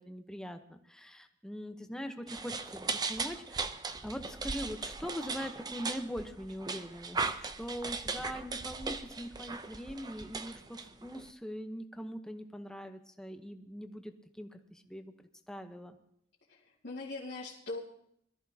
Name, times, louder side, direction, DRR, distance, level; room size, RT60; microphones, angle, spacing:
voice 1, 0.0-3.7 4.0-15.1 15.5-16.0, equal, 5° left, 6 dB, 0.9 m, -42 dB
sound 1, 2.3-11.3, right 4 dB, 20° right, 0.6 m, -38 dB
voice 2, 16.5-17.8, left 2 dB, 75° left, -7 dB, 2.3 m, -41 dB
22.0 x 13.5 x 2.8 m, 0.74 s
head